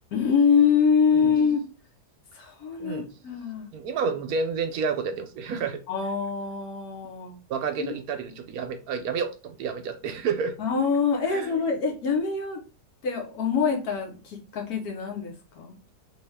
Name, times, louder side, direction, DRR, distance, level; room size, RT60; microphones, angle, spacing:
voice 1, 0.1-1.6 2.3-3.7 5.9-7.4 7.8-8.0 10.6-12.6 13.0-15.8, left 6 dB, 70° left, 1 dB, 1.4 m, -25 dB
voice 2, 2.8-3.1 3.7-5.8 7.5-10.6 11.3-11.5, right 5 dB, 70° right, 7 dB, 1.0 m, -30 dB
3.4 x 2.7 x 3.4 m, 0.32 s
omnidirectional pair, 1.7 m